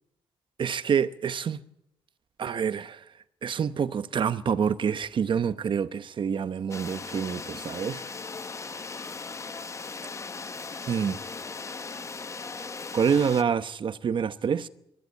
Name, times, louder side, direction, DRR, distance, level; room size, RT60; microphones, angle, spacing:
voice 1, 0.6-1.6 2.4-3.0 3.4-8.0 8.8-9.1 10.9-11.2 12.9-14.7, right 7 dB, 50° right, 0.9 m, -27 dB
sound 1, 6.7-13.4, left 4 dB, 25° left, 0.8 m, -38 dB
22.5 x 14.5 x 9.6 m
wide cardioid pair, 145°, 11 cm